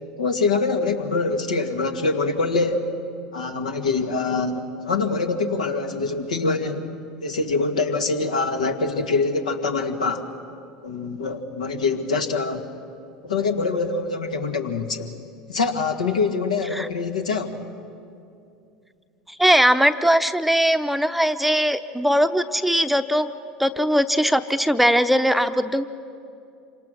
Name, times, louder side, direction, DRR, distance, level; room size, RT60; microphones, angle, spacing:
voice 1, 0.2-2.9 3.3-6.9 7.2-10.2 10.8-12.7 13.2-15.1 15.5-17.5, left 4 dB, 80° left, 5 dB, 1.8 m, -24 dB
voice 2, 19.4-23.3 23.6-25.8, equal, 5° right, 9 dB, 0.8 m, -20 dB
27.5 x 25.5 x 6.4 m, 2.5 s
figure-of-eight pair, 75°, 4 cm